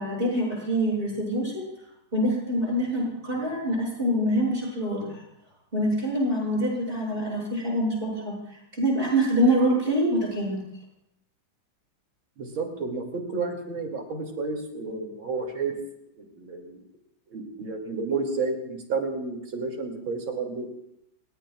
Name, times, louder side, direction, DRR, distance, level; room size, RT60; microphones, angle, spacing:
voice 1, 0.0-1.7 2.1-5.2 5.7-10.6, equal, 25° right, -3 dB, 8.1 m, -25 dB
voice 2, 12.4-15.7 16.2-16.8 17.3-20.7, right 4 dB, 75° right, 1 dB, 3.6 m, -31 dB
29.5 x 17.5 x 2.5 m, 0.81 s
omnidirectional pair, 2.2 m